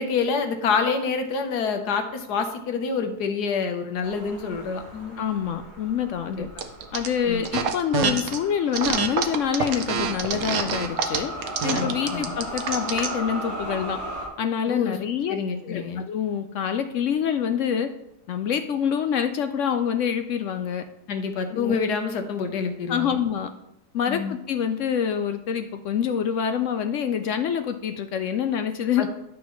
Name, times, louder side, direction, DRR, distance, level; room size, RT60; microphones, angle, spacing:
voice 1, 0.0-5.2 6.3-6.5 7.3-7.5 11.7-12.3 14.7-15.0 15.3-16.0 21.1-23.2 24.1-24.3 29.0-29.1, left 5 dB, 90° left, 6 dB, 1.5 m, -27 dB
sound 1, 4.0-14.3, right 1 dB, 45° right, 3.6 m, -37 dB
voice 2, 5.2-6.5 6.9-11.3 11.6-14.0 14.4-15.4 15.6-17.9 18.3-20.8 21.5-21.8 22.9-23.5 23.9-29.1, left 8 dB, 70° left, 8 dB, 0.7 m, -26 dB
sound 2, 6.6-7.1 7.4-8.4 8.7-13.2, right 6 dB, 70° right, 1.2 m, -26 dB
11.0 x 6.2 x 3.1 m, 0.83 s
omnidirectional pair, 1.7 m